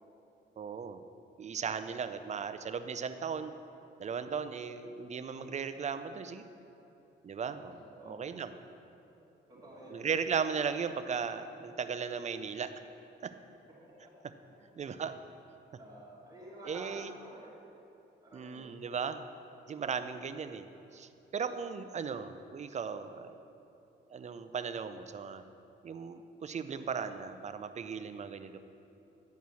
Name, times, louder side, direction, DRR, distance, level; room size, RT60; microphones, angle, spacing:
voice 1, 0.6-1.0 1.4-3.5 4.0-6.5 7.2-7.8 8.1-8.5 9.9-12.7 13.2-13.3 14.8-15.2 16.7-17.1 18.3-19.2 19.7-20.6 20.9-23.3 24.1-25.4 25.8-28.6, right 6 dB, 35° right, 10 dB, 0.5 m, -37 dB
voice 2, 7.7-8.2 9.5-10.2 13.8-13.9 14.4-14.7 15.8-17.7 18.2-18.8, equal, 20° right, -10 dB, 2.4 m, -51 dB
10.5 x 4.7 x 7.0 m, 2.8 s
cardioid pair, 90°, 20 cm